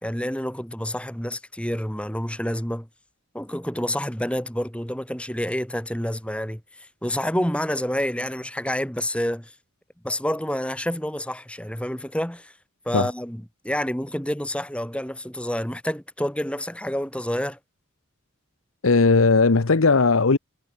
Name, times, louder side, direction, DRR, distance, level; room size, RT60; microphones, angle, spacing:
voice 1, 0.0-2.9 3.3-6.6 7.0-9.5 10.0-12.5 12.8-17.6, equal, 5° left, 3.1 m, -28 dB
voice 2, 18.8-20.4, left 4 dB, 80° left, 0.9 m, -17 dB
head